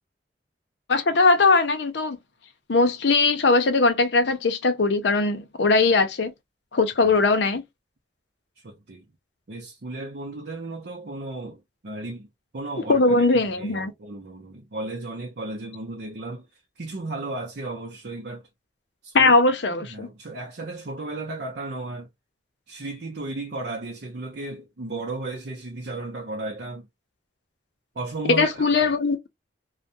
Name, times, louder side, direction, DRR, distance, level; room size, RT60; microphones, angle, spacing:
voice 1, 0.9-2.2 2.7-6.3 6.7-7.6 12.9-13.9 19.1-20.1 28.3-29.3, left 3 dB, 75° left, 0.6 m, -20 dB
voice 2, 8.6-9.1 9.5-12.3 12.5-13.0 13.6-16.5 16.8-18.5 19.0-19.4 19.7-22.1 22.7-26.9 27.9-28.9, right 2 dB, 65° right, 0.6 m, -34 dB
2.3 x 2.2 x 2.6 m
head